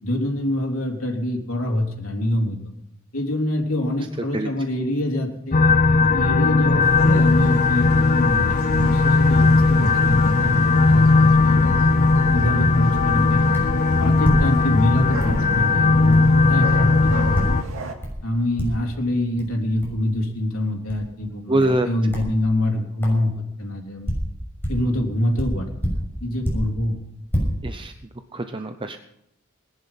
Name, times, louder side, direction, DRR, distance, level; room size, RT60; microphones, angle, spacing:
voice 1, 0.0-2.6 3.1-5.6 6.1-11.9 12.3-13.6 14.0-17.7 18.2-24.2 24.7-27.0, left 1 dB, 80° left, 1 dB, 3.5 m, -25 dB
sound 1, 5.5-17.6, left 3 dB, 40° left, 0.6 m, -17 dB
sound 2, 6.8-17.9, right 2 dB, 75° right, 2.4 m, -34 dB
sound 3, 13.5-13.8 14.2-14.9 15.2-15.4 16.1-16.3 17.3-17.6 18.0-18.3 18.6-18.9 19.4-19.5 19.8-20.0 20.9-21.0 21.6-21.8 22.1-22.3 23.0-23.2 23.8-24.9 25.3-26.8 27.1-27.4, equal, 10° left, 6.3 m, -27 dB
voice 2, 21.5-21.9 27.6-27.9 28.3-29.0, right 1 dB, 25° right, 7 dB, 0.7 m, -23 dB
20.0 x 10.5 x 5.8 m, 0.80 s
head